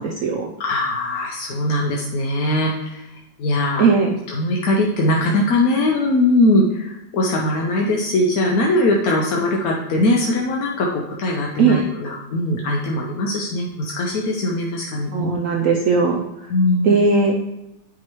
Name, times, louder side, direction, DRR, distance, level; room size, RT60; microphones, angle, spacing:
voice 1, 0.0-0.5 3.8-4.2 11.6-11.8 15.1-16.5 16.8-17.4, right 4 dB, 70° right, 2 dB, 0.8 m, -18 dB
voice 2, 0.6-3.1 3.4-3.9 4.3-15.3 16.5-17.0, left 1 dB, 60° left, -1 dB, 1.1 m, -20 dB
9.6 x 4.5 x 3.0 m, 0.90 s
omnidirectional pair, 2.0 m